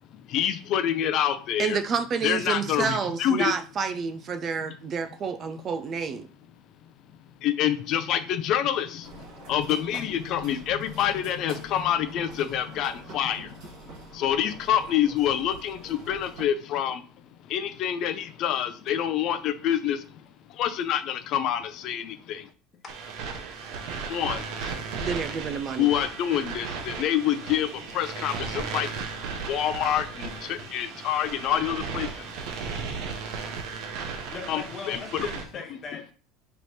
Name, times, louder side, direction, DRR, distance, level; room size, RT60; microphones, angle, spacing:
voice 1, 0.2-1.8 2.2-3.5 7.4-17.0 17.4-22.5 24.1-24.9 25.8-32.5 34.5-35.3, left 10 dB, 50° left, 0.5 m, -27 dB
voice 2, 1.6-6.3 25.0-25.9, right 6 dB, 35° right, 0.4 m, -29 dB
sound 1, 9.0-16.5, right 3 dB, 75° right, 1.4 m, -46 dB
sound 2, 22.9-35.4, right 5 dB, 60° right, 0.8 m, -35 dB
voice 3, 34.2-36.1, left 5 dB, 30° left, 0.9 m, -40 dB
3.3 x 3.0 x 4.1 m
supercardioid pair, 135°, 0 cm